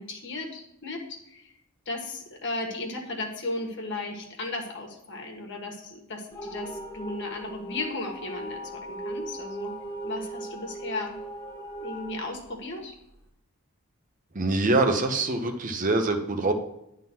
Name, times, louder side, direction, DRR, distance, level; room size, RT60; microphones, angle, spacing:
voice 1, 0.0-1.5 1.9-9.7 10.0-11.2 11.8-12.9, left 2 dB, 55° left, 2 dB, 1.5 m, -35 dB
sound 1, 6.3-13.2, right 1 dB, 15° left, 1.4 m, -38 dB
voice 2, 14.3-16.5, right 2 dB, 40° right, 6 dB, 0.9 m, -24 dB
10.5 x 3.8 x 6.0 m, 0.83 s
head